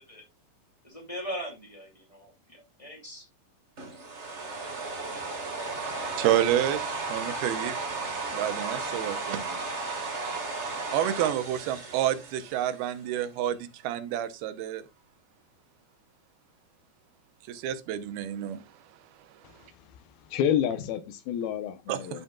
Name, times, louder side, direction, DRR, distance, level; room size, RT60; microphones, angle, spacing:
voice 1, 0.8-3.2, equal, 15° left, 1.6 m, -40 dB
sound 1, 3.8-13.0, right 3 dB, 60° right, 0.7 m, -34 dB
voice 2, 5.7-7.8 8.3-9.6 10.9-14.8 17.5-18.6 21.9-22.2, right 11 dB, 90° right, 2.8 m, -29 dB
voice 3, 20.3-22.2, left 9 dB, 80° left, 2.8 m, -29 dB
12.5 x 5.4 x 2.3 m
omnidirectional pair, 4.3 m